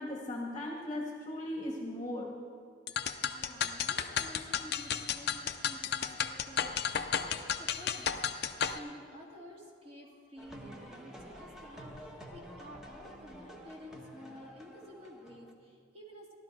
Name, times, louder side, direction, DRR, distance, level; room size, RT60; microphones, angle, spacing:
voice 1, 0.0-2.4, left 1 dB, 25° left, 0 dB, 1.3 m, -38 dB
sound 1, 2.9-8.8, left 8 dB, 55° left, 0.6 m, -33 dB
voice 2, 3.3-8.4 8.7-16.3, left 1 dB, 30° right, -2 dB, 2.2 m, -51 dB
sound 2, 10.4-15.5, equal, 5° right, 1.1 m, -50 dB
15.5 x 12.0 x 4.6 m, 2.3 s
head